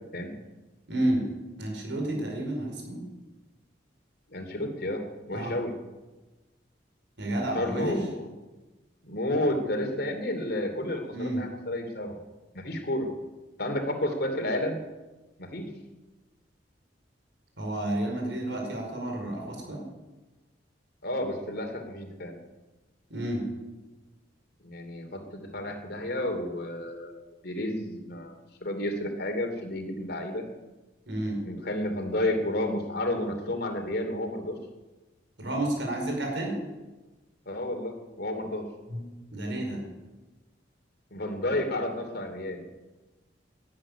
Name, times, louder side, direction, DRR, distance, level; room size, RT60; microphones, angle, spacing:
voice 1, 0.9-1.3 1.6-3.1 5.3-5.5 7.2-8.0 11.1-11.4 17.6-19.8 23.1-23.5 31.1-31.4 35.4-36.6 38.9-39.8, right 1 dB, 75° right, 1 dB, 4.9 m, -31 dB
voice 2, 4.3-5.7 7.5-8.3 9.0-12.2 12.5-13.1 13.6-14.8 15.4-15.7 21.0-22.4 24.6-28.3 28.6-30.4 31.5-34.6 37.5-38.6 41.1-42.6, left 1 dB, 60° left, 4 dB, 2.8 m, -31 dB
11.5 x 11.5 x 9.9 m, 1.2 s
head